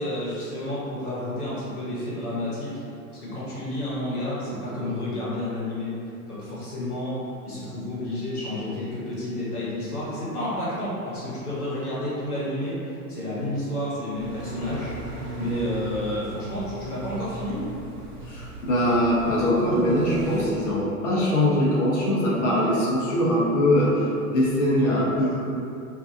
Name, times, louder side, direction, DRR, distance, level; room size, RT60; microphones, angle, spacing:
voice 1, 0.0-2.8 3.1-6.0 6.3-12.8 13.1-15.0 15.4-17.6 24.8-25.0, left 1 dB, 80° left, -9 dB, 1.1 m, -30 dB
sound 1, 14.1-20.4, right 1 dB, 55° right, 0.6 m, -37 dB
voice 2, 18.2-25.4, left 1 dB, 55° left, -5 dB, 0.8 m, -22 dB
2.5 x 2.3 x 2.5 m, 2.6 s
figure-of-eight pair, 90°, 44 cm